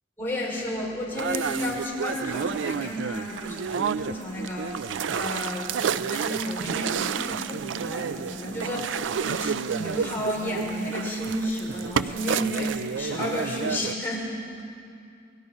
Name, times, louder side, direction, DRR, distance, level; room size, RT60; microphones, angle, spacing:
voice 1, 0.2-14.3, left 1 dB, 15° left, -4 dB, 5.2 m, -32 dB
sound 1, 1.1-13.9, right 7 dB, 85° right, 0.4 m, -30 dB
29.5 x 19.5 x 5.6 m, 2.4 s
head